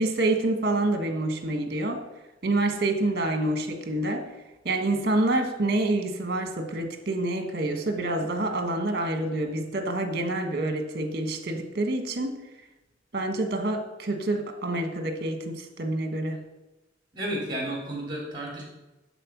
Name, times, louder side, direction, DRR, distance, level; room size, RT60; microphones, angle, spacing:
voice 1, 0.0-2.0 2.4-4.2 4.6-12.4 13.1-16.4, right 2 dB, 55° right, 6 dB, 1.3 m, -27 dB
voice 2, 17.1-18.6, right 1 dB, 25° right, -3 dB, 3.5 m, -32 dB
11.0 x 4.3 x 6.0 m, 1.0 s
head